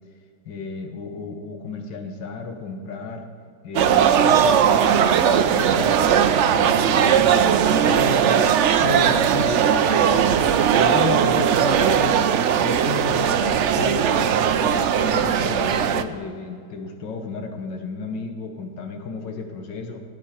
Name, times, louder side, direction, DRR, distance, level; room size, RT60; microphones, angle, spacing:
voice 1, 0.5-3.3 3.6-6.0 6.5-8.4 8.8-10.5 10.8-12.3 12.6-20.0, left 4 dB, 85° left, 4 dB, 1.9 m, -33 dB
sound 1, 3.7-16.0, right 8 dB, 70° right, 0.6 m, -18 dB
18.0 x 8.3 x 4.4 m, 2.3 s
omnidirectional pair, 1.9 m